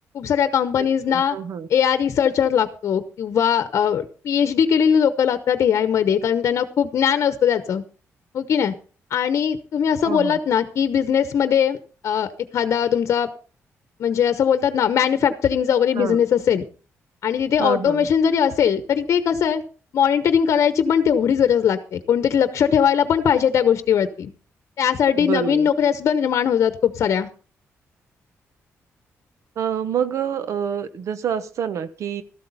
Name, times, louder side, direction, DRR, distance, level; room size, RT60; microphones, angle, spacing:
voice 1, 0.1-1.4 1.7-7.8 8.3-8.7 9.1-11.8 12.0-13.3 14.0-16.6 17.2-19.6 19.9-24.3 24.8-27.3, left 8 dB, 65° left, 10 dB, 0.9 m, -20 dB
voice 2, 0.8-1.7 10.0-10.4 16.0-16.2 17.6-18.1 25.2-25.7 29.6-32.2, right 8 dB, 70° right, 12 dB, 1.0 m, -27 dB
14.0 x 12.0 x 4.1 m, 0.38 s
cardioid pair, 120°, 5 cm